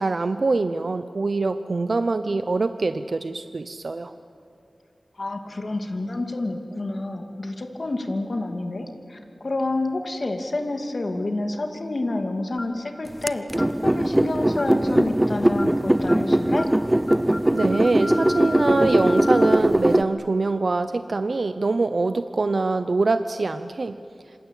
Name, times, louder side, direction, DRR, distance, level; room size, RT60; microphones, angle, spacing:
voice 1, 0.0-4.1 17.5-24.0, right 3 dB, 65° right, 10 dB, 0.8 m, -24 dB
voice 2, 5.2-13.5 13.8-16.7, left 2 dB, 55° left, 4 dB, 2.6 m, -28 dB
sound 1, 12.6-12.9 13.6-13.8 14.6-14.9 15.6-15.8 16.1-16.3 16.6-16.8 17.1-19.6, left 3 dB, 35° left, 2.7 m, -34 dB
sound 2, 13.3-20.0, right 1 dB, 15° right, 0.8 m, -20 dB
27.0 x 26.0 x 8.4 m, 2.6 s
wide cardioid pair, 70°, 0 cm